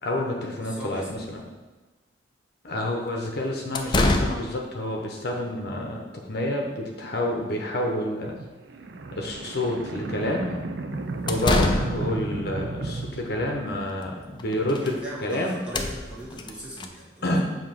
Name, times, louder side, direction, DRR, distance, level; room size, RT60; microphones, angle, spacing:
voice 1, 0.0-1.4 2.6-6.0 6.3-8.3 9.1-10.5 11.2-15.0 15.2-15.6 17.2-17.6, left 1 dB, 60° left, 0 dB, 0.9 m, -28 dB
voice 2, 0.6-1.3 14.8-17.3, equal, 5° right, -6 dB, 1.6 m, -39 dB
sound 1, 1.2-1.3 3.1-3.2 3.7-4.6 11.0-12.2 14.0-14.1 14.4-15.0 15.2-15.3 15.6-16.9, left 2 dB, 25° left, 0.5 m, -26 dB
sound 2, 8.2-14.1, right 3 dB, 75° right, 0.5 m, -34 dB
7.2 x 2.9 x 5.7 m, 1.2 s
head